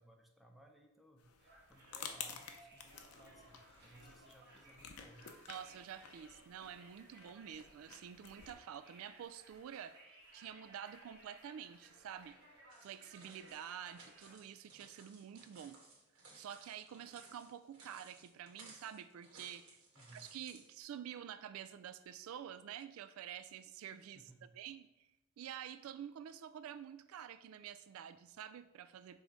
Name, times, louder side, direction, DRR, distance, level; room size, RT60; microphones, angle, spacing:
voice 1, 0.0-5.3 19.9-20.3 24.1-24.5, right 1 dB, ahead, 2 dB, 0.7 m, -62 dB
sound 1, 1.2-8.5, left 7 dB, 80° left, 0.7 m, -52 dB
Conversation, 1.4-14.4, right 1 dB, 50° right, 2.1 m, -62 dB
voice 2, 5.5-12.4 12.8-15.8 16.3-19.8 20.1-24.2 24.6-25.1 25.4-29.2, right 9 dB, 70° right, 14 dB, 0.3 m, -49 dB
sound 2, 12.7-20.7, right 2 dB, 85° right, 2.1 m, -60 dB
6.1 x 3.8 x 4.7 m, 0.91 s
head